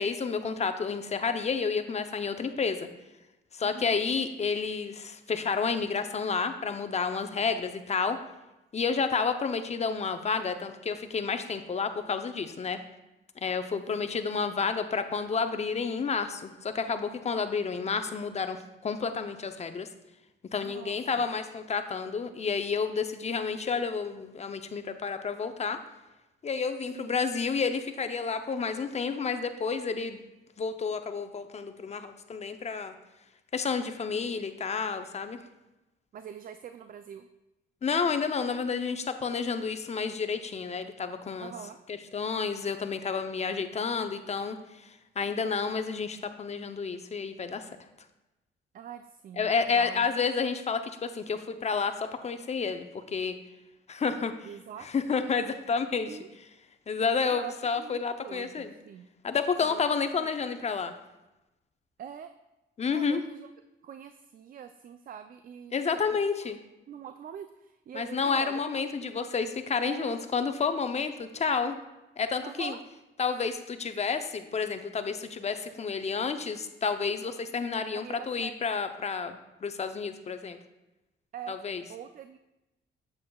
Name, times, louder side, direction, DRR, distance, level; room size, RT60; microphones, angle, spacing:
voice 1, 0.0-2.9 3.5-8.2 8.7-12.8 13.4-19.9 20.5-25.8 26.4-30.2 30.6-32.9 33.5-35.4 37.8-41.5 41.9-44.9 45.2-47.6 49.4-53.3 53.9-54.3 54.8-56.2 56.9-58.7 59.2-60.9 62.8-63.2 65.7-66.6 67.9-71.7 72.2-72.8 73.2-80.6 81.5-81.8, left 5 dB, 35° left, 9 dB, 0.6 m, -30 dB
voice 2, 3.6-4.0 13.7-14.3 20.6-21.3 26.9-27.2 36.1-37.3 41.4-41.8 48.7-50.1 54.4-54.9 56.1-56.3 57.2-59.1 59.6-59.8 60.2-60.3 62.0-62.3 62.9-63.5 63.8-65.8 66.4-66.5 66.9-69.1 69.8-70.2 72.4-72.8 77.9-78.5 81.3-81.6 81.9-82.4, right 8 dB, 45° right, 9 dB, 0.4 m, -44 dB
8.3 x 7.5 x 2.3 m, 0.99 s
cardioid pair, 90°, 20 cm